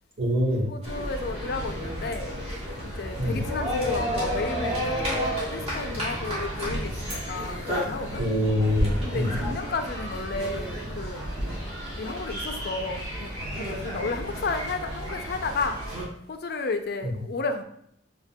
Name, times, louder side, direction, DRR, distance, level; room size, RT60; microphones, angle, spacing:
voice 1, 0.2-0.7 3.2-3.4 8.2-9.3 17.0-17.1, equal, 75° right, -5 dB, 1.6 m, -25 dB
voice 2, 0.7-2.4 2.8-8.2 9.0-11.2 12.0-13.3 13.6-15.8 16.3-17.6, left 3 dB, 60° left, 7 dB, 0.4 m, -32 dB
sound 1, 0.8-16.0, equal, 35° right, 1.6 m, -31 dB
6.6 x 2.7 x 2.2 m, 0.70 s
head